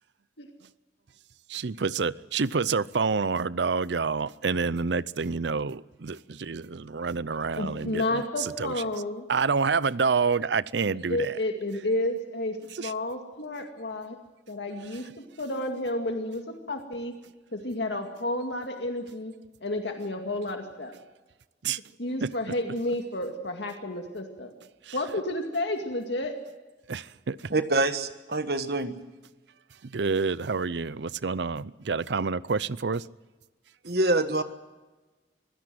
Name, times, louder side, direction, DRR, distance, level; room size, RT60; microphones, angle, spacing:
voice 1, 1.5-8.7 9.3-11.4 12.7-12.9 21.6-21.8 22.2-22.3 24.8-25.0 26.9-27.5 29.8-33.1, right 5 dB, 75° right, 0.6 m, -28 dB
voice 2, 7.6-9.3 11.1-14.2 14.5-15.1 15.4-17.1 17.5-19.3 19.6-20.9 22.0-24.5 24.9-26.4, left 1 dB, 75° left, 2.2 m, -31 dB
voice 3, 27.5-29.0 33.8-34.4, right 2 dB, 60° right, 1.4 m, -25 dB
24.5 x 16.5 x 7.8 m
head